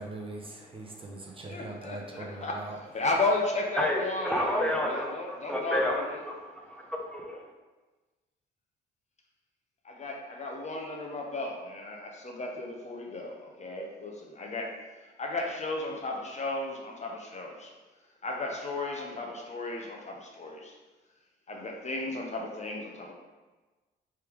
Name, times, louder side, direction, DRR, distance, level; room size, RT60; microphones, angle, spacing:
voice 1, 0.0-2.8, right 2 dB, 25° right, 0 dB, 0.7 m, -41 dB
voice 2, 1.5-2.6 2.9-6.2 9.8-14.8 15.2-17.7 18.2-20.8 21.5-23.1, left 2 dB, 35° left, 0 dB, 0.8 m, -34 dB
voice 3, 3.7-7.5, left 1 dB, 5° left, 0 dB, 0.8 m, -31 dB
3.4 x 3.3 x 4.6 m, 1.2 s
cardioid pair, 90°, 20 cm